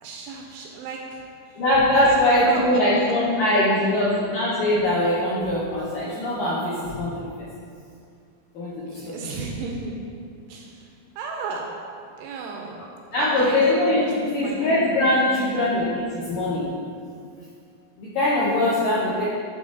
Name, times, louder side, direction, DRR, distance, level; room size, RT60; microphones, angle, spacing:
voice 1, 0.0-1.6 2.0-4.3 8.9-15.0 15.3-15.7 19.1-19.3, right 3 dB, 80° right, 1 dB, 2.4 m, -35 dB
voice 2, 1.6-7.3 8.5-9.1 13.1-16.7 18.0-19.3, left 1 dB, 80° left, -8 dB, 2.0 m, -22 dB
9.7 x 3.7 x 3.7 m, 2.3 s
omnidirectional pair, 5.0 m